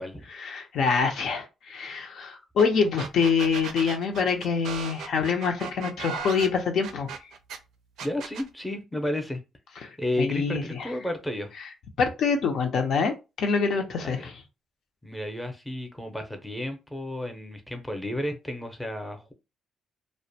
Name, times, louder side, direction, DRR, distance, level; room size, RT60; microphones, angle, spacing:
voice 1, 0.3-7.1 9.8-10.9 12.0-14.4, left 5 dB, 70° left, 0.5 m, -26 dB
sound 1, 2.6-2.7 3.0-7.6 8.0-8.5, right 7 dB, 80° right, 0.4 m, -37 dB
voice 2, 8.0-9.4 10.0-11.5 14.0-14.3 15.0-19.3, left 1 dB, 5° left, 0.6 m, -32 dB
2.4 x 2.1 x 2.7 m
cardioid pair, 90°, 0 cm